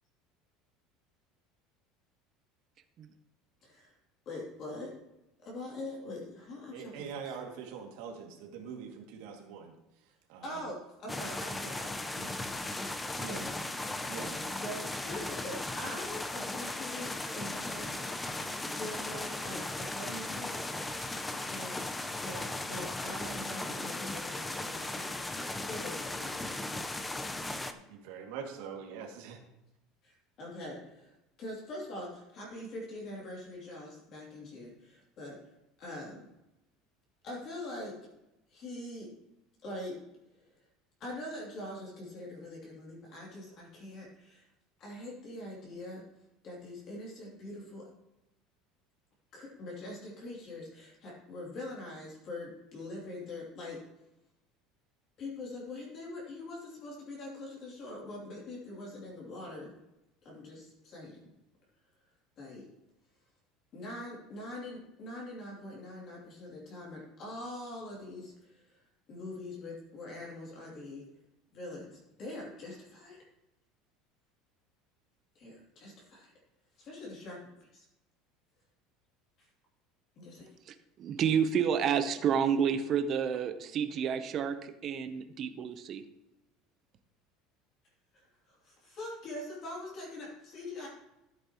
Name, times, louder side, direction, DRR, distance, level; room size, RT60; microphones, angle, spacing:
voice 1, 3.6-3.9 4.3-4.9 5.4-7.3 10.4-12.9 13.3-18.2 18.6-20.5 21.3-21.8 22.2-25.1 25.5-26.7 30.0-35.4 35.8-36.2 37.2-37.9 38.5-39.1 39.6-39.9 41.0-44.5 44.8-46.0 46.4-47.9 49.3-53.8 55.2-59.7 60.2-61.3 62.4-62.6 63.7-68.8 69.1-71.0 71.5-73.2 75.3-76.3 76.8-77.4 77.7-77.8 80.2-80.5 88.1-90.9, left 1 dB, 35° left, -3 dB, 2.7 m, -43 dB
voice 2, 6.7-9.7 10.3-10.6 13.2-13.5 14.1-14.4 27.6-29.4, right 6 dB, 65° right, 1 dB, 2.1 m, -43 dB
sound 1, 11.1-27.7, left 2 dB, 5° left, 0.5 m, -37 dB
voice 3, 80.7-86.0, right 7 dB, 30° right, 9 dB, 0.7 m, -30 dB
14.0 x 8.3 x 2.9 m, 0.92 s
cardioid pair, 175°, 0 cm